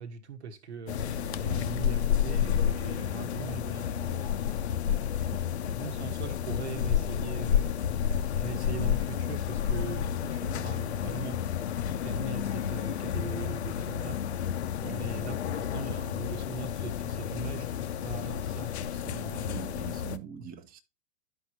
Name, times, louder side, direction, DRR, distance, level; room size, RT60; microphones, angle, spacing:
voice 1, 0.0-4.4 5.8-7.7 8.3-14.2 14.9-19.6 20.4-20.5, right 5 dB, 70° right, 1.2 m, -41 dB
sound 1, 0.9-20.2, left 9 dB, 65° left, 0.7 m, -31 dB
voice 2, 1.5-1.8 4.8-5.5 14.8-15.0 19.4-20.8, right 10 dB, 25° right, 0.8 m, -44 dB
11.5 x 5.0 x 2.9 m
figure-of-eight pair, 100°, 35 cm